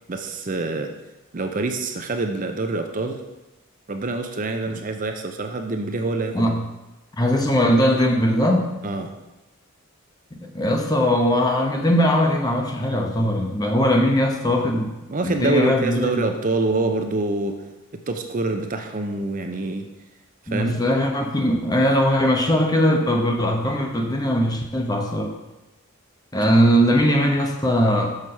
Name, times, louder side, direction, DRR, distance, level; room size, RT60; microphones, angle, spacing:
voice 1, 0.1-0.9 1.3-3.2 3.9-6.5 8.8-9.1 15.1-17.6 18.1-19.9 20.5-20.8, right 2 dB, 40° right, 5 dB, 0.6 m, -26 dB
voice 2, 7.2-8.7 10.3-14.9 15.2-16.2 20.5-25.3 26.3-28.2, equal, 20° left, 2 dB, 0.8 m, -20 dB
6.5 x 6.1 x 5.4 m, 1.0 s
head